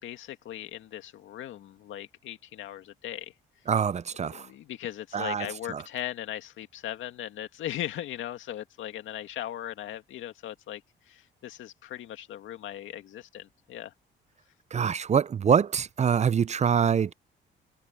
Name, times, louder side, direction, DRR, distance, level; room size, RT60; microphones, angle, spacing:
voice 1, 0.0-3.3 4.3-13.9, left 12 dB, 80° left, 2.1 m, -38 dB
voice 2, 3.7-4.5 5.1-5.8 14.7-17.1, right 7 dB, 35° right, 0.5 m, -25 dB
cardioid pair, 90°, 20 cm